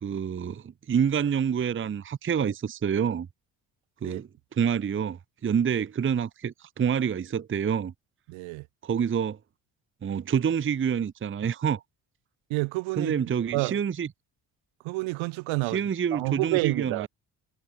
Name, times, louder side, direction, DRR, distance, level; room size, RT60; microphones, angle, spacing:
voice 1, 0.0-3.3 4.0-7.9 8.8-9.4 10.0-11.8 13.0-14.1 15.7-17.1, right 7 dB, 25° right, 0.8 m, -27 dB
voice 2, 8.3-8.6 12.5-13.1 13.5-13.8 14.8-15.8 16.1-17.1, right 24 dB, 70° right, 1.8 m, -28 dB
hypercardioid pair, 45°, 48 cm